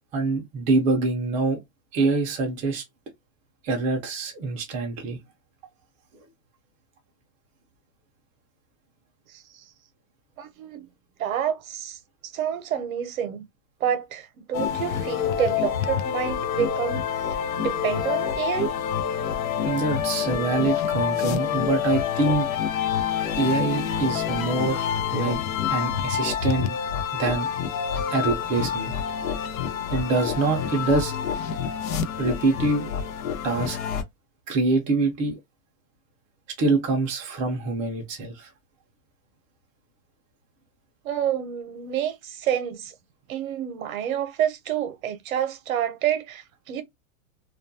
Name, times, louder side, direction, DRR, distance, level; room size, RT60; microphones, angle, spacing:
voice 1, 0.1-1.6 1.9-2.8 3.6-5.2 19.6-22.5 23.4-25.4 25.7-26.8 27.1-27.5 28.1-28.9 29.9-31.2 32.2-32.9 33.4-33.8 34.5-35.4 36.6-38.5, right 3 dB, 20° right, 0.4 m, -25 dB
voice 2, 10.4-10.9 11.2-12.0 12.2-13.4 13.8-17.0 17.6-18.7 41.0-42.9 43.3-46.8, right 9 dB, 80° right, 0.7 m, -28 dB
sound 1, 14.5-34.0, left 8 dB, 80° left, 0.6 m, -27 dB
2.3 x 2.2 x 2.6 m
supercardioid pair, 145°, 41 cm